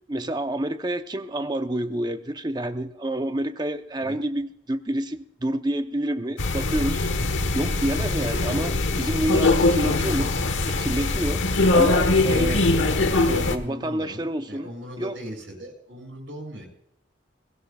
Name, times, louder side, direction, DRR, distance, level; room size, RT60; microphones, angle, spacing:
voice 1, 0.1-10.4 10.7-11.4 11.7-12.6 13.3-14.7 15.0-15.1, right 1 dB, 20° right, 0.7 m, -28 dB
sound 1, 6.4-13.6, left 2 dB, 85° left, 1.2 m, -22 dB
voice 2, 13.6-16.7, equal, 85° right, 6.6 m, -40 dB
21.5 x 16.5 x 2.4 m
head